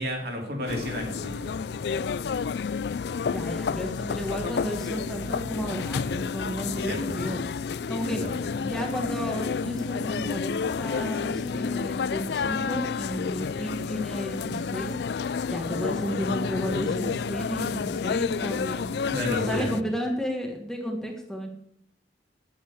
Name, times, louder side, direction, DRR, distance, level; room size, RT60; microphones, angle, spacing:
voice 1, 0.0-1.5 6.8-7.2 8.2-8.4 19.1-19.7, equal, 55° right, 1 dB, 3.2 m, -32 dB
sound 1, 0.7-19.8, left 5 dB, 60° left, 0.4 m, -30 dB
voice 2, 3.3-7.5 7.9-8.2 8.6-15.0 15.5-18.9 19.4-21.5, equal, 5° left, 1 dB, 1.5 m, -32 dB
10.0 x 8.6 x 8.0 m, 0.75 s
head